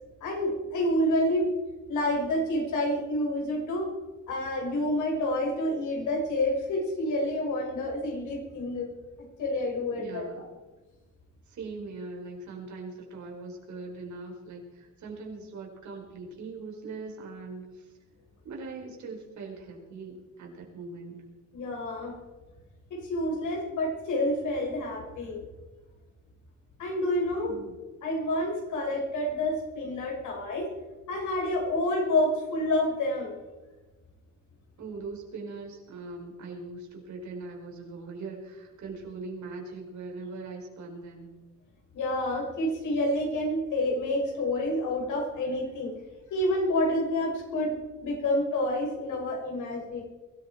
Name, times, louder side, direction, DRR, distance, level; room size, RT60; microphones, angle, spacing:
voice 1, 0.2-1.5 1.9-3.9 4.3-8.9 9.4-10.4 21.5-22.1 22.9-25.4 26.8-27.5 28.0-30.7 31.1-33.3 41.9-45.9 46.3-47.7 48.0-50.0, left 1 dB, 75° left, -1 dB, 6.2 m, -28 dB
voice 2, 10.0-10.5 11.4-17.9 18.4-21.2 27.4-27.8 34.8-41.3, right 3 dB, 70° right, 1 dB, 5.1 m, -41 dB
22.5 x 13.5 x 4.5 m, 1.2 s
cardioid pair, 90°, 30 cm